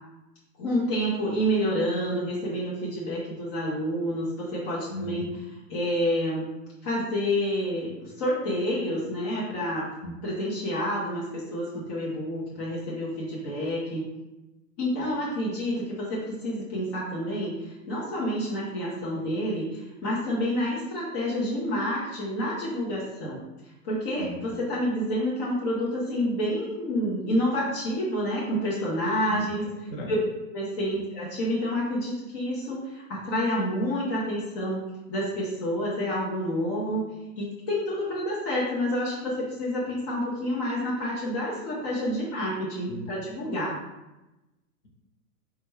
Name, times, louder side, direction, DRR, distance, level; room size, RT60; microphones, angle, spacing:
voice 1, 0.6-5.2 5.7-6.5 6.8-9.9 10.2-14.1 14.8-23.4 23.8-29.6 30.1-30.2 30.5-34.8 35.1-37.0 37.4-43.8, equal, 20° left, -7 dB, 0.4 m, -28 dB
voice 2, 4.9-5.3 10.0-10.1 15.0-15.1 24.2-24.5 29.3-30.1 42.9-43.1, left 1 dB, 35° left, 0 dB, 0.9 m, -37 dB
4.2 x 2.3 x 3.0 m, 1.0 s
figure-of-eight pair, 105°, 48 cm